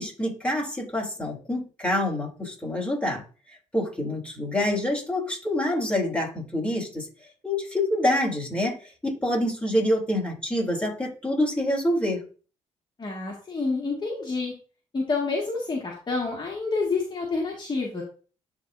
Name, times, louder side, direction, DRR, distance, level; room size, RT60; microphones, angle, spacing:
voice 1, 0.0-3.2 3.7-7.1 7.4-8.8 9.0-12.2, left 1 dB, 10° left, -2 dB, 3.0 m, -26 dB
voice 2, 13.0-14.5 14.9-18.0, left 3 dB, 35° left, -2 dB, 1.9 m, -28 dB
11.0 x 3.7 x 2.6 m, 0.38 s
supercardioid pair, 65°, 13 cm